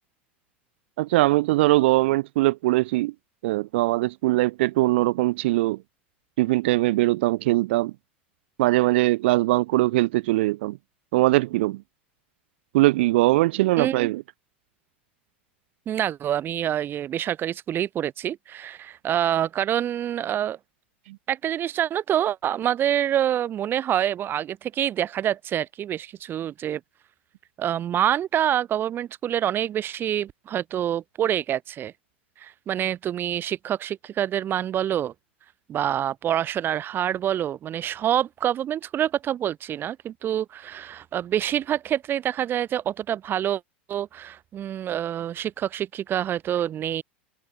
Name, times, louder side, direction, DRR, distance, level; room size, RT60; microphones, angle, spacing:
voice 1, 1.0-3.1 3.4-5.8 6.4-7.9 8.6-10.8 11.1-11.8 12.7-14.2 21.1-21.2, right 19 dB, 70° right, 1.5 m, -21 dB
voice 2, 13.8-14.1 15.9-20.6 21.3-26.8 27.6-31.9 32.4-35.1 35.7-43.6 43.9-47.0, right 10 dB, 35° right, 1.6 m, -26 dB
hypercardioid pair, 105°, 6 cm